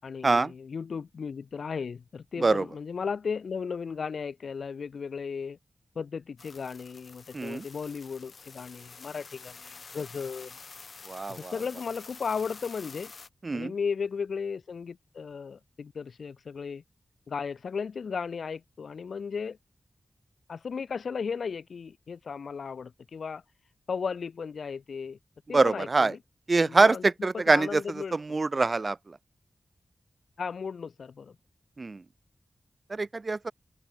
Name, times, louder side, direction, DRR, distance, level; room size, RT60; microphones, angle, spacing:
voice 1, 0.0-5.6 5.9-10.6 11.3-13.1 13.5-16.8 17.3-19.6 20.5-23.4 23.9-25.2 25.5-26.2 26.6-28.4 30.4-31.3, left 5 dB, 80° left, 5.0 m, -35 dB
sound 1, 6.4-13.3, left 4 dB, 60° left, 6.0 m, -48 dB
voice 2, 7.3-7.6 11.1-11.5 13.4-13.7 25.5-26.1 26.5-27.8 28.1-29.0 31.8-32.0 32.9-33.5, right 3 dB, 40° right, 0.9 m, -24 dB
wide cardioid pair, 105°, 0 cm